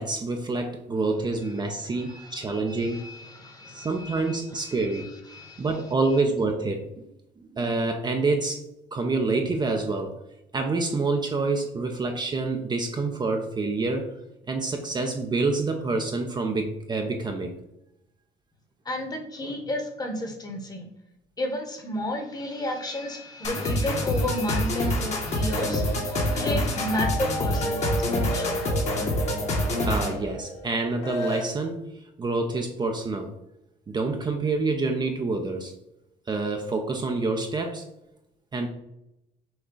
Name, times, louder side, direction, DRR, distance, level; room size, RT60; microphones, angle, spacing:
voice 1, 0.0-3.1 3.7-5.1 5.6-7.1 7.4-8.6 8.9-10.1 10.5-14.1 14.5-17.6 19.4-19.6 29.7-31.8 32.2-33.3 33.9-35.7 36.3-37.8 38.5-38.7, right 3 dB, 25° right, 3 dB, 0.5 m, -27 dB
voice 2, 2.0-5.7 18.8-20.9 21.4-28.6, left 1 dB, 25° left, 3 dB, 1.1 m, -33 dB
sound 1, 23.4-30.2, left 1 dB, 40° left, 1.2 m, -27 dB
sound 2, 25.4-31.4, equal, 80° left, 1.3 m, -33 dB
6.2 x 2.2 x 3.8 m, 0.85 s
cardioid pair, 110°, 17 cm